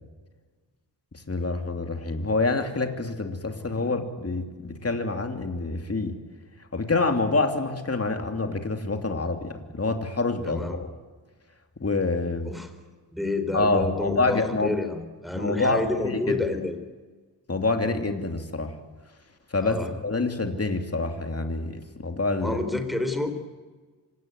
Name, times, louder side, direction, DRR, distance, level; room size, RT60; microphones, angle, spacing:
voice 1, 1.3-6.2 6.7-10.9 11.8-12.5 13.5-14.7 15.3-16.4 17.5-18.7 19.5-19.8 20.0-22.6, left 3 dB, 35° left, 5 dB, 2.9 m, -27 dB
voice 2, 10.4-10.8 12.5-12.7 13.1-16.8 19.6-19.9 22.4-23.3, left 2 dB, ahead, 7 dB, 4.0 m, -29 dB
26.0 x 17.5 x 9.5 m, 1.4 s
wide cardioid pair, 75°, 43 cm